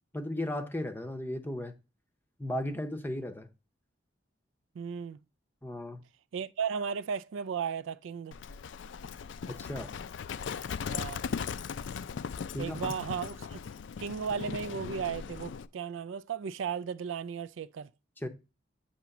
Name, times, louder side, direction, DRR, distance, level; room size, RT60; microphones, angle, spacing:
voice 1, 0.1-1.7 2.4-3.5 5.6-6.0 9.5-9.9 12.5-12.9 18.2-18.3, left 1 dB, 10° left, 0.6 m, -35 dB
voice 2, 4.8-5.2 6.3-8.4 10.9-11.2 12.6-13.6 14.0-17.9, right 6 dB, 90° right, 0.4 m, -35 dB
Livestock farm animals working animals, 8.3-15.7, left 6 dB, 75° left, 0.4 m, -38 dB
8.2 x 3.0 x 5.8 m
head